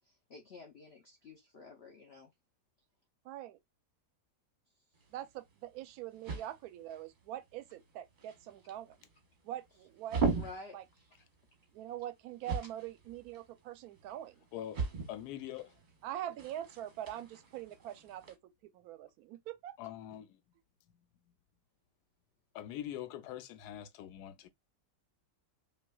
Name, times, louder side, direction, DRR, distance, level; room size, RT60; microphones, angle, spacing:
voice 1, 0.1-2.3 10.3-11.1, left 3 dB, 55° left, 0.7 m, -51 dB
voice 2, 3.2-3.6 5.1-9.0 9.4-10.2 10.7-10.8 11.7-14.5 16.0-19.8, right 12 dB, 70° right, 1.0 m, -43 dB
sound 1, 4.9-18.3, right 4 dB, 35° right, 0.9 m, -41 dB
voice 3, 15.1-15.7 19.8-20.4 22.5-24.5, left 11 dB, 75° left, 1.1 m, -43 dB
5.4 x 2.4 x 2.2 m
omnidirectional pair, 1.8 m